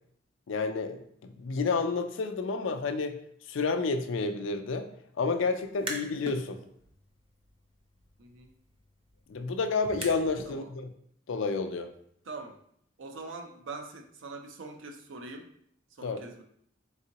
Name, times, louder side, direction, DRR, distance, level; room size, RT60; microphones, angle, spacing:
voice 1, 0.5-1.0 1.4-3.2 3.5-4.9 5.2-6.6 9.3-10.9 11.3-11.9 16.0-16.2, left 4 dB, 80° left, 7 dB, 0.4 m, -30 dB
sound 1, 5.6-6.4 6.8-10.6, right 2 dB, 30° right, 0.5 m, -43 dB
voice 2, 12.3-12.6 13.0-15.5 16.0-16.4, right 3 dB, 80° right, 4 dB, 0.5 m, -43 dB
3.9 x 3.6 x 2.8 m, 0.68 s
head